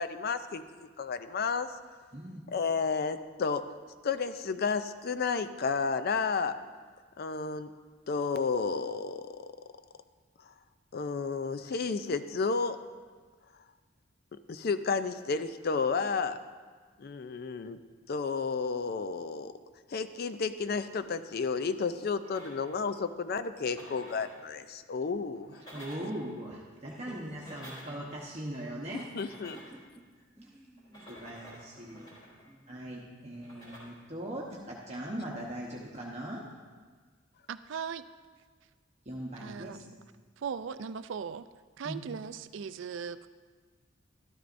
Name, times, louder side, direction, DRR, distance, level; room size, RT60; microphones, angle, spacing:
voice 1, 0.0-1.7 2.5-3.6 4.0-6.5 7.2-7.7 8.1-9.5 10.9-12.8 14.5-16.4 17.0-17.8 18.1-19.5 19.9-25.6 29.1-29.6, left 5 dB, 50° left, 11 dB, 0.4 m, -32 dB
sound 1, 22.2-22.9 23.5-24.4 25.3-26.3 27.1-28.1 29.0-29.8 30.8-32.5 33.3-33.8, equal, 25° left, 3.3 m, -51 dB
voice 2, 25.7-29.1 31.1-32.1 32.7-36.4 39.0-39.9 41.8-42.0, right 1 dB, 30° right, -4 dB, 1.0 m, -40 dB
voice 3, 26.9-27.8 29.5-30.0 30.4-32.7 33.5-33.6, right 1 dB, 5° right, -4 dB, 0.8 m, -54 dB
voice 4, 37.5-38.0 39.4-39.8 40.4-41.5 41.8-43.3, right 6 dB, 65° right, 13 dB, 0.4 m, -38 dB
12.5 x 12.5 x 2.6 m, 1.5 s
head